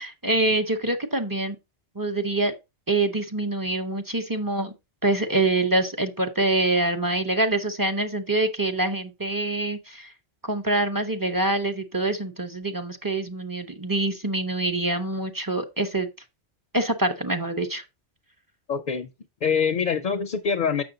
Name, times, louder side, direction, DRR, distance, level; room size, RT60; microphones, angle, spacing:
voice 1, 0.0-1.6 2.0-2.5 2.9-4.7 5.0-10.1 10.4-16.1 16.7-17.8, right 2 dB, 20° right, 0.6 m, -25 dB
voice 2, 18.7-19.1 19.4-20.8, left 6 dB, 50° left, 0.6 m, -24 dB
7.0 x 6.3 x 3.8 m
omnidirectional pair, 1.2 m